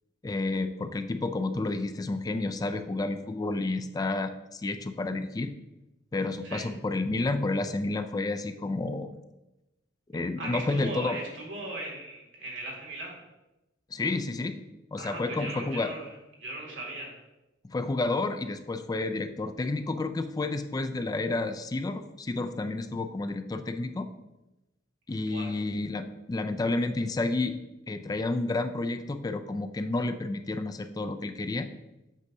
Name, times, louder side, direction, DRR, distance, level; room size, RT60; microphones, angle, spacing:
voice 1, 0.2-5.5 6.1-9.1 10.1-11.2 13.9-14.6 14.9-15.9 17.6-24.1 25.1-27.6 27.9-31.7, left 2 dB, 20° left, 9 dB, 0.3 m, -30 dB
voice 2, 10.4-13.2 15.0-16.1 16.4-17.1 25.3-25.5, right 2 dB, 85° right, -3 dB, 2.3 m, -38 dB
8.1 x 2.7 x 6.0 m, 0.97 s
head